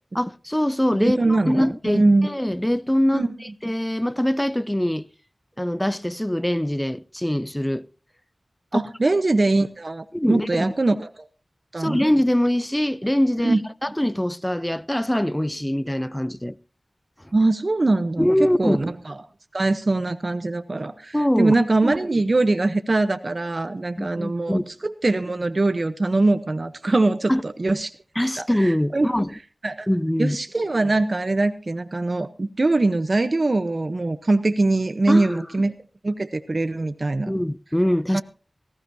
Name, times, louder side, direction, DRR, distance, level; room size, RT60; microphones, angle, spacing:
voice 1, 0.1-3.3 3.6-5.1 5.6-7.9 8.7-8.8 10.1-10.6 11.8-13.6 13.8-16.6 18.2-18.8 21.1-21.5 24.0-24.6 27.3-27.4 28.2-29.3 29.9-30.4 35.1-35.5 37.3-38.2, equal, 10° left, 0.6 m, -23 dB
voice 2, 1.0-2.3 3.1-3.3 8.7-11.1 11.7-12.0 13.4-13.6 17.3-19.1 19.5-27.9 28.4-29.1 29.6-29.9 30.2-35.7 36.0-37.3 38.1-38.2, right 2 dB, 55° right, 0.9 m, -22 dB
18.5 x 15.5 x 2.7 m
wide cardioid pair, 45°, 0 cm